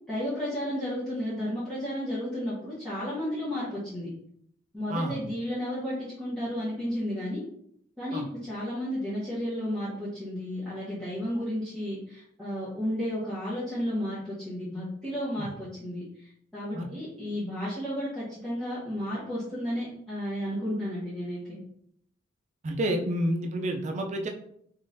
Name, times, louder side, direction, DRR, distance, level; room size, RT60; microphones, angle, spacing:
voice 1, 0.1-4.1 4.7-7.4 8.0-21.6, equal, 5° left, -12 dB, 1.1 m, -33 dB
voice 2, 4.9-5.2 8.1-8.3 15.4-15.5 16.7-16.9 22.6-24.3, right 1 dB, 35° right, 4 dB, 0.4 m, -29 dB
3.7 x 3.1 x 2.6 m, 0.69 s
head